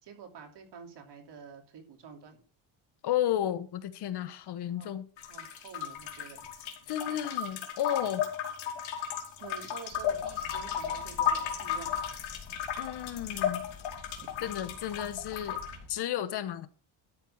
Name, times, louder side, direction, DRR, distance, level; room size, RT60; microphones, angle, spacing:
voice 1, 0.0-2.4 4.7-4.9 5.3-6.4 9.4-12.1 14.2-14.3, right 6 dB, 60° right, 3.2 m, -48 dB
voice 2, 3.0-5.0 6.9-8.3 12.8-13.7 14.4-15.6 15.9-16.7, left 11 dB, 60° left, 1.2 m, -33 dB
sound 1, 5.2-15.8, left 9 dB, 75° left, 2.6 m, -34 dB
sound 2, 9.9-15.9, left 2 dB, 40° left, 3.3 m, -50 dB
13.0 x 4.6 x 7.2 m
cardioid pair, 120°, 47 cm